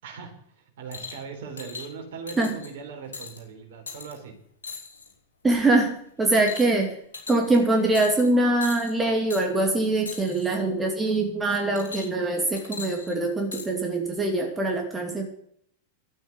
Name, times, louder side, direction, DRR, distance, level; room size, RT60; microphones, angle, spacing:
voice 1, 0.0-4.3, right 5 dB, 55° right, 3 dB, 4.3 m, -40 dB
sound 1, 0.9-1.2 1.6-1.9 2.3-2.7 3.1-3.4 3.9-4.1 4.6-5.1 5.5-5.8 6.3-6.8 7.1-7.6 7.9-8.3 8.6-8.9 9.3-9.5 10.1-10.4 11.8-12.3 12.6-13.7 14.5-14.6, left 4 dB, 70° left, 3.6 m, -39 dB
voice 2, 5.4-7.0 7.3-15.3, right 2 dB, 15° right, 2 dB, 2.5 m, -23 dB
12.5 x 9.0 x 8.3 m, 0.66 s
figure-of-eight pair, 90°, 0 cm